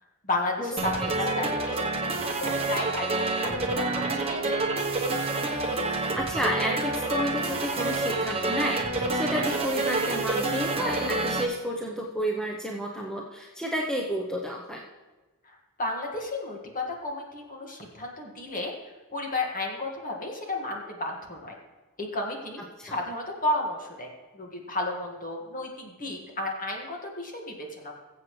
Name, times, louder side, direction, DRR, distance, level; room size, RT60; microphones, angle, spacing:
voice 1, 0.2-4.6 15.4-18.7 19.1-21.6 22.0-27.9, left 2 dB, 40° left, 1 dB, 1.8 m, -33 dB
sound 1, 0.8-11.4, right 3 dB, 25° right, 1.0 m, -28 dB
voice 2, 6.1-14.8 22.8-22.9, equal, 5° left, -2 dB, 0.8 m, -31 dB
21.5 x 7.6 x 3.2 m, 1.2 s
head